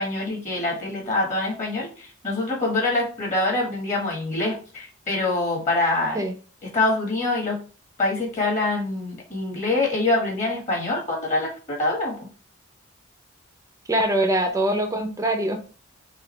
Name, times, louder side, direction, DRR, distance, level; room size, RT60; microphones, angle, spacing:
voice 1, 0.0-6.2 6.6-7.6 8.0-12.3, left 2 dB, 35° left, -2 dB, 1.7 m, -25 dB
voice 2, 13.9-15.6, right 1 dB, 15° right, 4 dB, 0.7 m, -23 dB
6.1 x 2.5 x 3.2 m, 0.37 s
head